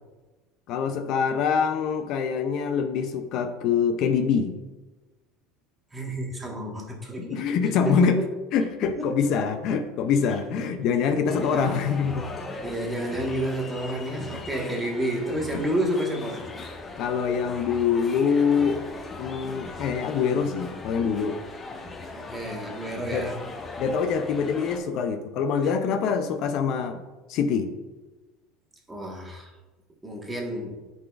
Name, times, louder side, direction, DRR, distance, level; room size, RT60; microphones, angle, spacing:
voice 1, 0.7-4.6 7.2-8.2 8.5-12.3 15.5-15.6 17.0-18.8 19.2-21.4 23.1-23.3 23.8-27.0 27.3-27.7, left 6 dB, 60° left, 8 dB, 0.5 m, -25 dB
voice 2, 5.9-7.4 7.9-8.1 8.8-9.3 10.3-10.7 11.4-11.9 12.6-16.5 22.1-23.4 28.9-29.5 30.0-30.7, right 1 dB, 15° right, -1 dB, 1.4 m, -30 dB
sound 1, 11.3-24.8, left 3 dB, 25° left, 1.0 m, -39 dB
10.0 x 3.9 x 2.4 m, 1.2 s
supercardioid pair, 105°, 0 cm